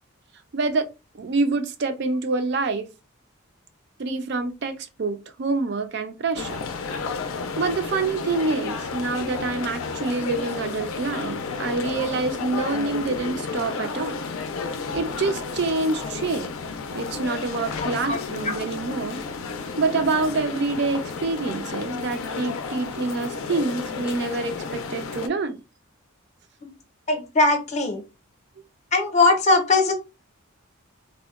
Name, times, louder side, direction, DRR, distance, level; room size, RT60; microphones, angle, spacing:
voice 1, 0.5-0.9 1.2-2.9 4.0-6.6 7.6-14.3 14.9-16.5 16.9-19.2 19.8-25.6, right 3 dB, 50° right, 0.4 m, -26 dB
sound 1, 6.3-25.3, left 4 dB, 70° left, 0.4 m, -32 dB
voice 2, 17.8-18.2 26.6-26.7 27.1-28.0 28.9-29.9, left 3 dB, 35° left, 0.6 m, -20 dB
3.5 x 2.1 x 2.3 m
head